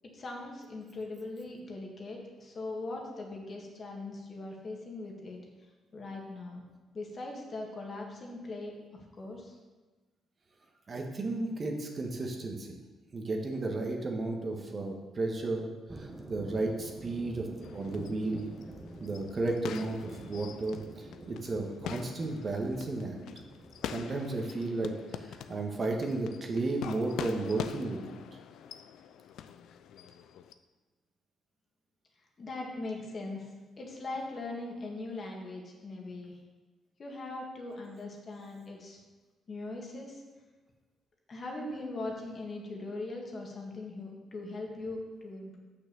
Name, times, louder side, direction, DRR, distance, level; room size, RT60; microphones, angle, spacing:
voice 1, 0.1-5.4 5.9-6.7 6.9-9.5 32.4-36.4 37.0-39.0 39.5-40.2 41.3-45.6, left 2 dB, 45° left, 0 dB, 1.9 m, -40 dB
voice 2, 10.9-12.7 13.1-17.5 17.7-18.5 19.0-23.2 23.8-28.0, right 2 dB, 40° right, 1 dB, 1.5 m, -33 dB
sound 1, 15.9-23.9, right 2 dB, 20° right, 1.2 m, -48 dB
sound 2, 17.6-30.5, left 9 dB, 80° left, 0.4 m, -44 dB
6.5 x 6.0 x 6.9 m, 1.3 s
cardioid pair, 90°, 0 cm